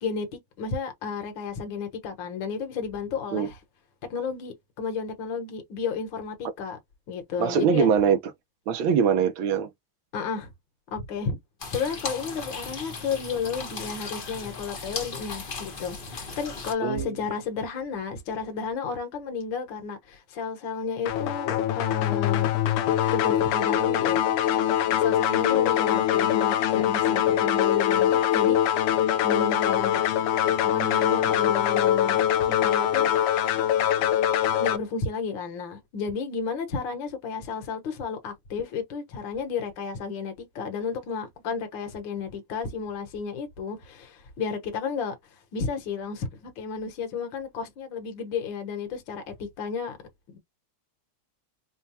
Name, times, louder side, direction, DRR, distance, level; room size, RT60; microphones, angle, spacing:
voice 1, 0.0-3.6 4.1-6.8 7.1-7.9 10.1-10.5 10.9-11.4 11.7-22.5 23.1-24.2 25.0-28.8 29.2-33.1 34.6-45.2 45.5-50.0 50.3-50.4, left 5 dB, 65° left, 1.8 m, -32 dB
voice 2, 7.4-8.2 8.7-9.7 16.8-17.1 25.4-25.6, right 7 dB, 70° right, 1.4 m, -23 dB
sound 1, 11.6-16.7, left 4 dB, 40° left, 0.7 m, -37 dB
sound 2, 21.1-34.8, left 10 dB, 85° left, 1.6 m, -23 dB
5.4 x 2.2 x 2.7 m
omnidirectional pair, 2.4 m